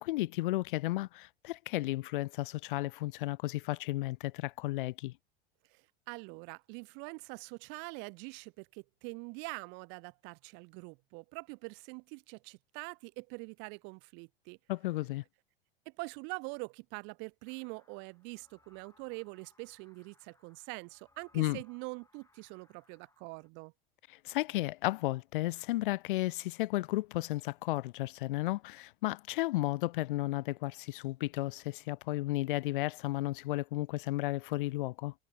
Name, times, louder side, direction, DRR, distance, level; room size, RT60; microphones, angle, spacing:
voice 1, 0.0-5.1 14.7-15.2 21.3-21.6 24.2-35.1, left 18 dB, 60° left, 0.5 m, -33 dB
voice 2, 6.1-14.6 15.9-23.7, right 33 dB, 40° right, 0.4 m, -44 dB
sound 1, 17.4-23.5, left 3 dB, 10° left, 4.9 m, -69 dB
figure-of-eight pair, 85°, 30 cm